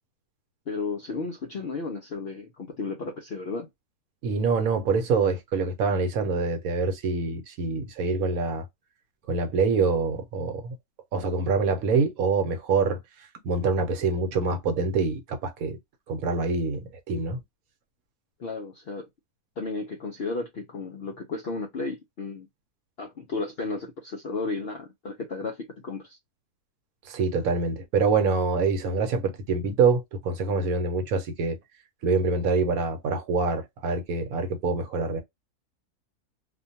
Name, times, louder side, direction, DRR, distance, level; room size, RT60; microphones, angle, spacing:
voice 1, 0.7-3.7 18.4-19.1 19.6-22.5 23.0-26.2, left 3 dB, 65° left, 0.6 m, -33 dB
voice 2, 4.2-8.7 9.3-10.7 11.1-13.0 13.4-15.8 16.1-17.4 27.1-31.6 32.0-35.2, right 4 dB, 70° right, 1.1 m, -25 dB
2.5 x 2.2 x 2.6 m
omnidirectional pair, 1.6 m